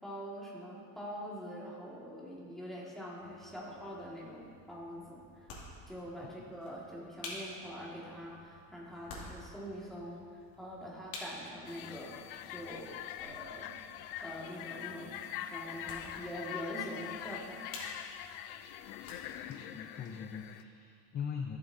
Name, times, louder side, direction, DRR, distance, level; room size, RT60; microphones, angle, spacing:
voice 1, 0.0-5.5 5.9-10.3 10.6-12.1 12.5-13.7 14.2-17.7, equal, ahead, -6 dB, 1.9 m, -44 dB
sound 1, 3.2-19.6, left 2 dB, 50° left, 2.5 m, -51 dB
sound 2, 11.6-20.6, left 11 dB, 75° left, 0.6 m, -44 dB
voice 2, 19.5-21.6, left 7 dB, 25° left, 3 dB, 0.4 m, -41 dB
15.5 x 7.3 x 2.7 m, 2.3 s
cardioid pair, 140°, 44 cm